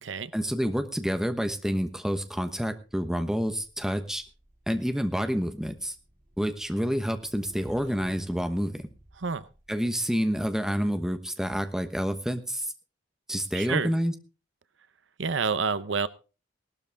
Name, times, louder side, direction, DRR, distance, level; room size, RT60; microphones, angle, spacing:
voice 1, 0.3-4.2 4.7-5.9 6.4-8.9 9.7-12.7 13.3-14.1, equal, 5° right, 7 dB, 1.1 m, -28 dB
Motorcycle / Engine, 3.6-10.0, equal, 40° right, 3.5 m, -52 dB
voice 2, 9.2-9.5 13.5-13.9 15.2-16.1, right 5 dB, 75° right, 15 dB, 0.8 m, -28 dB
17.5 x 12.5 x 3.5 m, 0.33 s
head